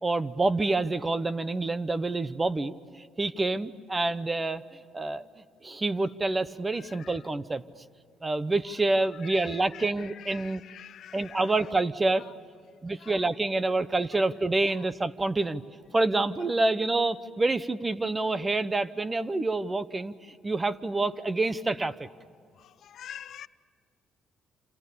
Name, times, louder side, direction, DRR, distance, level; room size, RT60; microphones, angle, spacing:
voice 1, 0.0-4.6 4.9-5.3 5.6-7.6 8.2-10.6 11.1-12.3 12.8-15.6 15.9-22.1, right 2 dB, 20° right, 15 dB, 1.0 m, -27 dB
voice 2, 6.8-7.2 9.2-11.5 12.2-12.3 13.0-13.2 14.7-14.8 22.6-23.5, left 10 dB, 65° left, 15 dB, 0.7 m, -46 dB
28.0 x 28.0 x 7.0 m, 2.2 s
cardioid pair, 100°, 0 cm